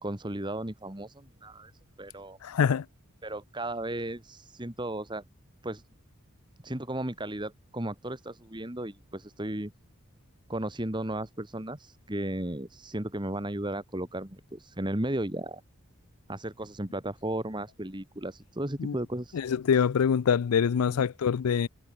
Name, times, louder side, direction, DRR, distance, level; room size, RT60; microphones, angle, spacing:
voice 1, 0.0-1.7 2.0-2.4 3.2-5.2 5.6-5.8 6.6-9.7 10.5-15.6 16.3-19.4 20.9-21.0, right 1 dB, 20° right, 1.8 m, -35 dB
voice 2, 2.4-2.8 18.8-18.9 19.3-21.7, left 7 dB, 90° left, 0.4 m, -25 dB
head